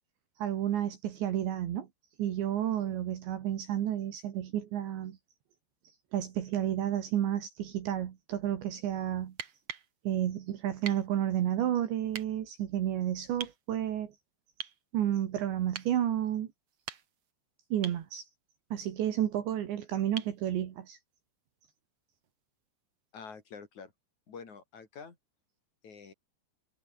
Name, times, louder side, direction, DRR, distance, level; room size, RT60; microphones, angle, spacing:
voice 1, 0.4-1.9 2.2-5.2 6.1-9.3 10.1-14.1 14.9-16.5 17.7-18.2 18.7-21.0, right 11 dB, 70° right, 4.1 m, -31 dB
sound 1, 9.3-9.9 10.8-11.1 12.1-12.3 13.4-13.6 14.6-14.8 15.7-15.9 16.7-17.3 17.8-18.0 20.2-20.4 22.2-22.3, right 8 dB, 45° right, 2.1 m, -41 dB
voice 2, 23.1-23.9 24.3-25.2 25.8-26.1, left 5 dB, 40° left, 4.7 m, -47 dB
omnidirectional pair, 5.7 m